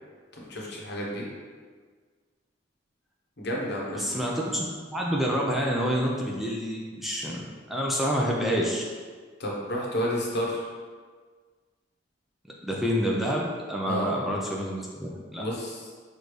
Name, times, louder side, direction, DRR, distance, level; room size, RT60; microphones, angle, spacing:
voice 1, 0.3-1.3 3.4-4.2 9.4-10.7 13.9-14.1 15.4-15.8, equal, 60° left, -3 dB, 0.9 m, -31 dB
voice 2, 3.9-8.8 12.6-15.4, equal, ahead, -3 dB, 0.4 m, -28 dB
6.3 x 2.6 x 3.1 m, 1.6 s
head